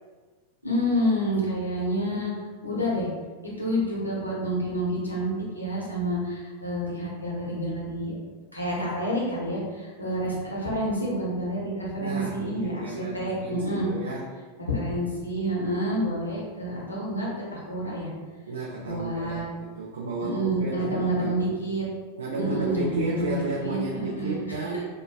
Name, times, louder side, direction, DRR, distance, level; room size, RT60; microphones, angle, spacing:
voice 1, 0.6-2.3 2.6-3.1 3.6-8.1 8.5-13.9 14.6-18.1 18.8-19.4 20.2-21.8 22.4-24.6, equal, 85° left, -5 dB, 0.7 m, -28 dB
voice 2, 12.0-14.3 18.4-21.6 22.2-24.8, right 2 dB, 70° right, -4 dB, 0.3 m, -33 dB
2.9 x 2.2 x 2.2 m, 1.4 s
figure-of-eight pair, 90°, 0 cm